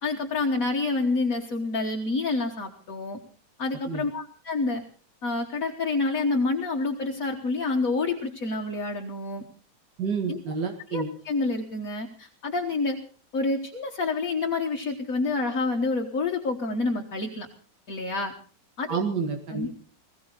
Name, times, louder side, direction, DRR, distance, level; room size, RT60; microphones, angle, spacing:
voice 1, 0.0-3.2 3.6-4.8 5.2-9.4 10.3-10.4 10.9-13.0 13.3-17.5 17.9-18.3 18.8-19.0 19.5-19.8, left 3 dB, 55° left, 2 dB, 1.9 m, -28 dB
voice 2, 10.0-11.1 18.9-19.7, right 5 dB, 80° right, 3 dB, 2.4 m, -29 dB
21.0 x 15.5 x 4.0 m, 0.42 s
omnidirectional pair, 1.8 m